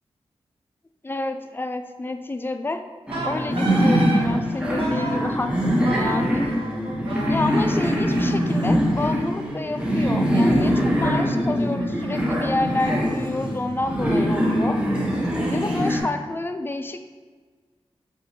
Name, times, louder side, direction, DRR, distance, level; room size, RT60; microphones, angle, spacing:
voice 1, 1.0-2.8 3.2-6.4 7.2-14.8 15.5-17.1, left 2 dB, 20° left, 7 dB, 0.3 m, -29 dB
sound 1, 3.1-16.0, equal, 10° right, 0.8 m, -23 dB
Wind instrument woodwind instrument, 3.1-4.2 4.8-5.2 5.8-8.8, right 2 dB, 60° right, 0.9 m, -32 dB
6.6 x 2.4 x 2.7 m, 1.5 s
cardioid pair, 60°, 11 cm